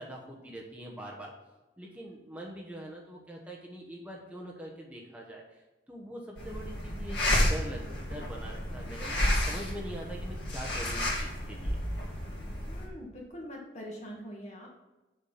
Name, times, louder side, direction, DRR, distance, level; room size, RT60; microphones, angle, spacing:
voice 1, 0.0-1.3 1.8-11.8, right 1 dB, 10° right, -2 dB, 1.1 m, -43 dB
sound 1, 6.4-12.9, left 1 dB, 75° left, 2.0 m, -31 dB
voice 2, 12.7-14.7, equal, 40° left, -2 dB, 2.0 m, -43 dB
7.0 x 6.1 x 5.7 m, 1.1 s
head